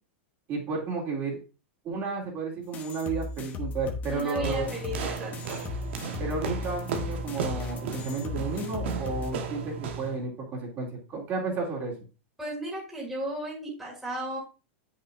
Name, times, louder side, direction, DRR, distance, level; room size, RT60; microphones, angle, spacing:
voice 1, 0.5-1.4 1.8-4.7 6.2-11.9, right 4 dB, 35° right, -2 dB, 2.8 m, -32 dB
sound 1, 2.7-9.3, left 3 dB, 25° left, 1.0 m, -36 dB
voice 2, 4.1-5.6 12.4-14.4, equal, 5° right, -5 dB, 2.3 m, -35 dB
sound 2, 4.4-10.2, right 6 dB, 65° right, 1.3 m, -35 dB
8.0 x 5.9 x 2.6 m, 0.32 s
supercardioid pair, 140°, 7 cm